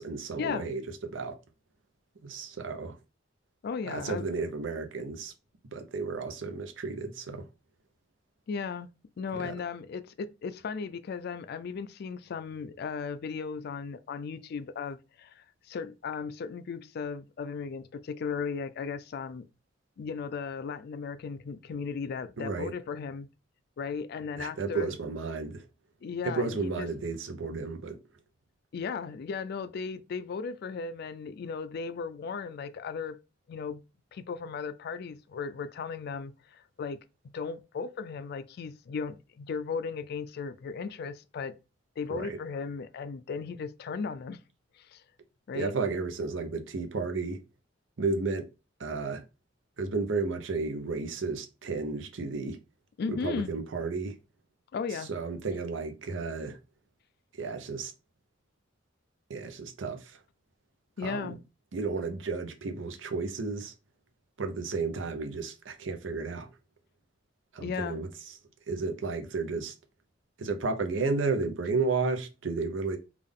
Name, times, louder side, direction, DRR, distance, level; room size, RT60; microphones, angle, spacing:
voice 1, 0.0-1.3 2.2-3.0 3.8-5.3 5.7-7.5 9.3-9.5 22.4-22.7 24.4-25.6 26.2-28.0 42.1-42.4 45.5-47.4 48.0-48.5 48.8-49.2 49.8-52.6 53.1-54.2 55.1-56.6 57.4-57.9 59.3-60.2 61.0-61.3 61.7-63.7 64.4-66.5 67.5-68.1 68.7-69.7 70.4-73.0, right 4 dB, 80° right, 0.7 m, -32 dB
voice 2, 3.6-4.2 8.5-8.9 9.2-19.4 20.0-23.3 23.8-25.0 26.0-26.9 28.7-33.2 33.5-33.8 34.1-37.0 37.3-41.6 42.0-44.4 44.8-45.0 45.5-45.7 53.0-53.5 54.7-55.1 61.0-61.4 67.6-68.0, left 5 dB, 55° left, 0.3 m, -36 dB
3.6 x 2.4 x 3.6 m
head